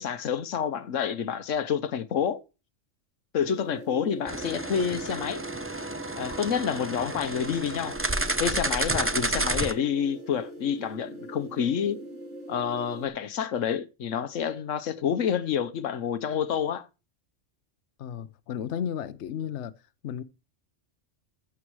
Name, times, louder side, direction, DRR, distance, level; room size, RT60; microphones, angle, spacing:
voice 1, 0.0-2.4 3.3-5.4 6.2-8.0 8.4-12.0 12.5-16.9, left 8 dB, 85° left, 1.3 m, -28 dB
sound 1, 3.5-13.1, right 1 dB, 70° right, 2.3 m, -42 dB
sound 2, 4.3-9.7, right 2 dB, 15° right, 0.6 m, -30 dB
voice 2, 18.0-19.7 20.0-20.2, left 8 dB, 65° left, 1.0 m, -33 dB
14.5 x 7.4 x 4.7 m
omnidirectional pair, 1.3 m